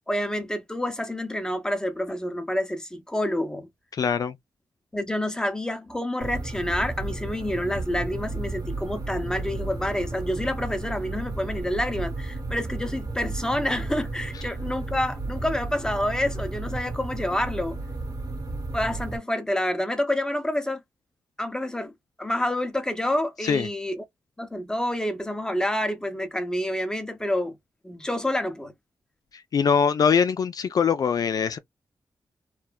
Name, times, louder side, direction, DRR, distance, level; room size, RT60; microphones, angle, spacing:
voice 1, 0.1-3.7 4.9-17.8 18.7-20.8 21.4-21.9 22.2-24.0 24.4-27.6 27.8-28.7, left 1 dB, 10° left, 1.1 m, -28 dB
voice 2, 3.9-4.3 23.4-23.7 29.3-31.6, left 6 dB, 60° left, 0.4 m, -22 dB
sound 1, 6.2-19.2, right 2 dB, 65° right, 1.1 m, -33 dB
3.2 x 2.2 x 2.3 m
cardioid pair, 60°, 7 cm